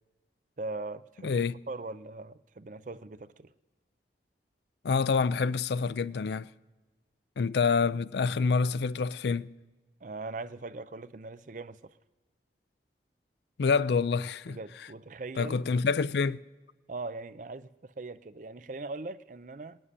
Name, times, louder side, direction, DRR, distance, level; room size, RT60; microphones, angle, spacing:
voice 1, 0.6-1.4 1.7-3.5 10.0-12.0 14.5-15.7 16.9-19.8, right 3 dB, 45° right, 0.5 m, -40 dB
voice 2, 1.2-1.6 4.8-6.5 7.4-9.5 13.6-14.6 15.4-16.4, left 5 dB, 70° left, 0.4 m, -27 dB
19.0 x 7.5 x 9.9 m
head